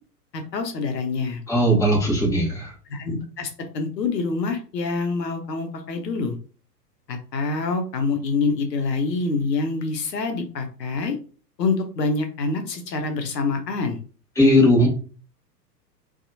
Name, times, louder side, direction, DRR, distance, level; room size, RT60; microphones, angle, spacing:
voice 1, 0.3-1.4 2.9-6.4 7.1-11.2 11.6-14.0, left 4 dB, 75° left, 5 dB, 0.7 m, -26 dB
voice 2, 1.5-2.7 14.4-14.9, equal, 5° left, -5 dB, 1.1 m, -18 dB
2.7 x 2.3 x 2.6 m, 0.39 s
figure-of-eight pair, 105°, 50 cm